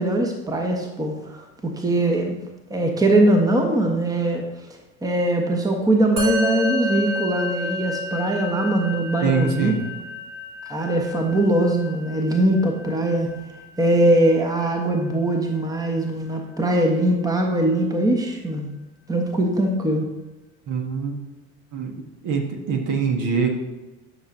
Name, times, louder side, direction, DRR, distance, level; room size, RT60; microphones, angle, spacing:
voice 1, 0.0-2.4 2.7-4.4 5.0-9.9 10.6-13.3 13.8-18.7 19.1-20.0, right 1 dB, 10° right, 3 dB, 1.2 m, -21 dB
Musical instrument, 6.2-15.7, left 2 dB, 80° right, 2.2 m, -31 dB
voice 2, 9.2-9.8 20.7-21.1 21.7-21.9 22.2-23.6, right 5 dB, 45° right, 3 dB, 1.4 m, -23 dB
12.5 x 5.7 x 2.7 m, 1.1 s
figure-of-eight pair, 65°, 43 cm